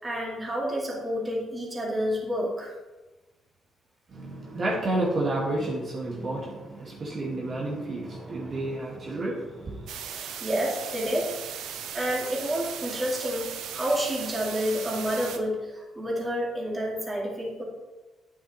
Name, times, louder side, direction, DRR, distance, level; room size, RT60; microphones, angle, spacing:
voice 1, 0.0-2.7 10.0-11.3 11.9-17.6, equal, 20° right, -3 dB, 2.5 m, -29 dB
voice 2, 4.1-9.9, right 2 dB, 50° right, -4 dB, 2.1 m, -30 dB
sound 1, 9.9-15.4, right 8 dB, 85° right, 0.7 m, -37 dB
9.0 x 7.1 x 3.2 m, 1.2 s
cardioid pair, 90°, 0 cm